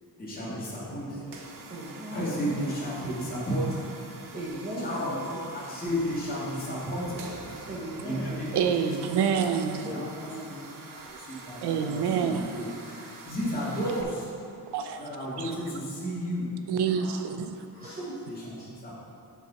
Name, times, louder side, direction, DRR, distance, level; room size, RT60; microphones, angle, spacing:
voice 1, 0.2-1.2 2.1-3.9 4.8-7.2 8.0-8.9 9.8-10.3 10.6-14.3 15.0-16.5 17.0-17.2 18.3-19.0, equal, 20° left, -9 dB, 2.1 m, -33 dB
sound 1, 1.2-14.0, right 3 dB, 55° right, 1.0 m, -45 dB
voice 2, 1.7-2.4 4.3-5.3 7.7-8.7 9.8-10.7 17.7-18.2, right 1 dB, 20° right, -8 dB, 1.2 m, -37 dB
voice 3, 8.5-9.9 11.6-12.5 14.7-15.1 15.4-15.6 16.7-17.6, right 7 dB, 80° right, 7 dB, 0.6 m, -27 dB
7.3 x 5.8 x 5.7 m, 2.7 s
wide cardioid pair, 165°, 40 cm